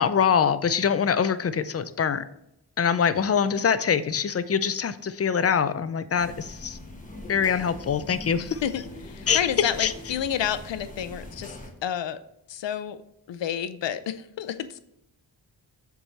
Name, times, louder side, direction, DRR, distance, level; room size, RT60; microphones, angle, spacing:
voice 1, 0.0-2.2 2.8-6.8 7.3-8.6 9.3-9.9, left 7 dB, 35° left, 13 dB, 0.4 m, -24 dB
sound 1, 6.2-11.7, left 1 dB, 20° left, 1.2 m, -42 dB
voice 2, 8.4-12.2 12.5-13.0 13.3-14.8, left 9 dB, 90° left, 13 dB, 0.5 m, -30 dB
7.1 x 3.6 x 4.0 m, 0.80 s
wide cardioid pair, 95°, 43 cm